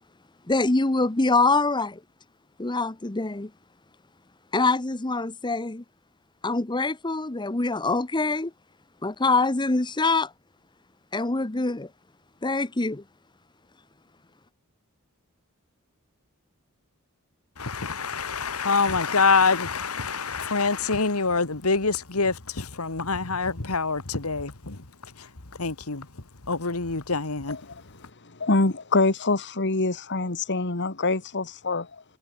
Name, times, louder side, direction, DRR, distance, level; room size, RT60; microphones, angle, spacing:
voice 1, 0.5-2.0 2.6-3.5 4.5-5.8 6.4-8.5 9.0-10.3 11.1-11.9 12.4-13.0, left 3 dB, 20° left, 0.9 m, -24 dB
voice 2, 17.6-25.3 25.6-26.1 26.5-27.6, left 4 dB, 90° left, 2.0 m, -26 dB
voice 3, 27.5-27.8 28.2-32.0, left 3 dB, 55° left, 1.9 m, -25 dB
head